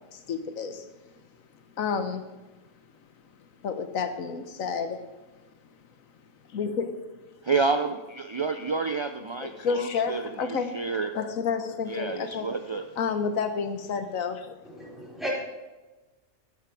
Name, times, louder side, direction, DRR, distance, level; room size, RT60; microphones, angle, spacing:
voice 1, 0.1-0.9 1.8-2.3 3.6-5.0 6.5-7.2 9.4-10.7 11.1-12.5 13.0-14.6, left 5 dB, 90° left, 9 dB, 1.5 m, -30 dB
voice 2, 7.4-11.2 11.9-12.8, right 4 dB, 45° right, 7 dB, 0.3 m, -29 dB
voice 3, 14.6-15.3, equal, ahead, -5 dB, 4.1 m, -35 dB
13.5 x 9.8 x 4.8 m, 1.1 s
omnidirectional pair, 1.4 m